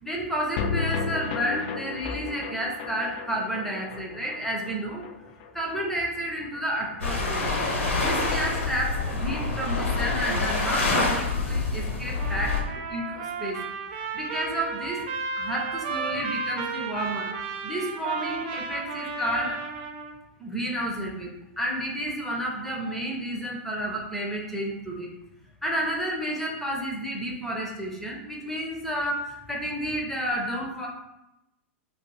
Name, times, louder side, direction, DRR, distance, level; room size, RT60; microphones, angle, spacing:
voice 1, 0.0-5.0 5.5-7.5 7.9-13.6 14.1-15.0 15.4-17.3 17.6-19.6 20.4-21.3 21.6-25.1 25.6-30.9, equal, 5° left, -2 dB, 0.6 m, -31 dB
sound 1, 0.6-7.0 7.3-7.4 7.6-7.7, left 5 dB, 50° left, 0.4 m, -34 dB
sound 2, 7.0-12.6, left 3 dB, 80° left, 0.9 m, -26 dB
Trumpet, 12.1-20.2, right 5 dB, 50° right, 0.4 m, -34 dB
2.5 x 2.5 x 3.9 m, 0.89 s
hypercardioid pair, 110°, 7 cm